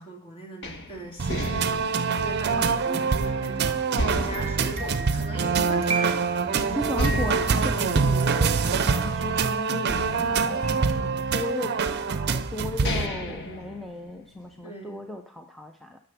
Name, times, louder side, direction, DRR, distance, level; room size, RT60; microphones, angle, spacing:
voice 1, 0.0-6.9 7.3-7.9 8.6-8.9 13.0-13.7 14.6-15.1, right 1 dB, 25° left, 0 dB, 2.3 m, -40 dB
sound 1, 0.6-3.4 4.0-5.9 6.3-6.4 6.9-9.3 9.9-11.5 12.2-12.3 12.7-14.5, equal, 55° left, 1.3 m, -34 dB
sound 2, 1.2-13.1, right 5 dB, 50° right, 0.6 m, -25 dB
voice 2, 2.5-3.1 6.7-16.0, left 1 dB, ahead, 3 dB, 0.5 m, -36 dB
sound 3, 4.3-9.4, right 3 dB, 30° right, 1.4 m, -35 dB
10.0 x 6.9 x 6.0 m, 0.64 s
head